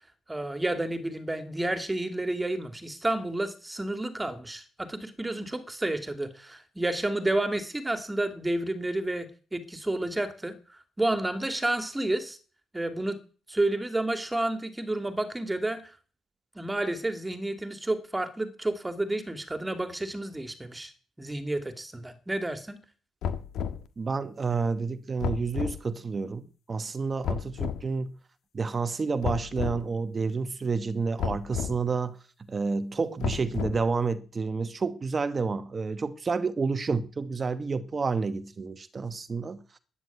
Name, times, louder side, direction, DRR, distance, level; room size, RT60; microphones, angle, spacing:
voice 1, 0.3-10.5 11.0-12.4 12.7-13.2 13.5-15.8 16.5-20.9 21.2-22.8, right 1 dB, 15° right, 2.6 m, -30 dB
sound 1, 23.2-23.9 25.2-25.8 27.2-27.8 29.2-29.8 31.2-31.8 33.2-33.9, left 7 dB, 75° left, 1.6 m, -32 dB
voice 2, 24.0-28.2 28.5-32.2 32.5-39.6, right 4 dB, 35° right, 1.1 m, -29 dB
13.0 x 9.9 x 9.3 m
cardioid pair, 90°, 0 cm